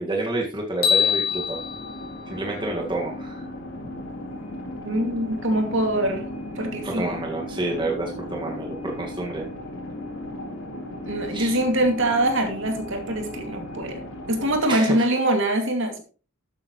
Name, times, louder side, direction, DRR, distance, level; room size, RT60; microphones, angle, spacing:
voice 1, 0.0-1.6 2.3-3.5 6.8-9.5 11.3-11.6 14.7-15.0, right 2 dB, 20° right, 0 dB, 1.9 m, -29 dB
sound 1, 0.8-3.1, left 7 dB, 40° left, 3.9 m, -25 dB
sound 2, 1.2-14.6, left 1 dB, 65° left, 3.7 m, -36 dB
voice 2, 4.8-6.3 6.5-7.1 11.1-14.0 14.3-16.0, right 1 dB, 55° right, 4 dB, 2.5 m, -23 dB
12.5 x 9.0 x 3.1 m, 0.36 s
head